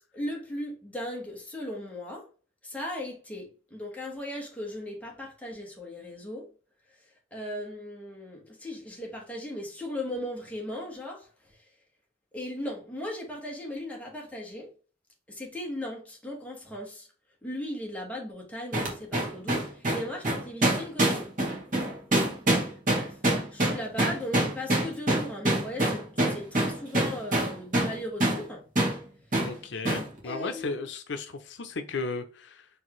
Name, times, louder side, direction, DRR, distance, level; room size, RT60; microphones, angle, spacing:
voice 1, 0.1-2.2 2.6-6.4 7.3-11.3 12.3-14.7 15.3-17.1 17.4-21.3 22.6-23.1 23.5-28.6 30.2-30.8, left 1 dB, 10° left, 1.3 m, -37 dB
sound 1, 18.7-28.0 28.2-28.4 28.8-29.0 29.3-29.5 29.9-30.1, right 1 dB, 50° right, 1.6 m, -25 dB
voice 2, 29.4-32.7, left 3 dB, 80° left, 0.6 m, -35 dB
4.6 x 3.3 x 3.1 m
head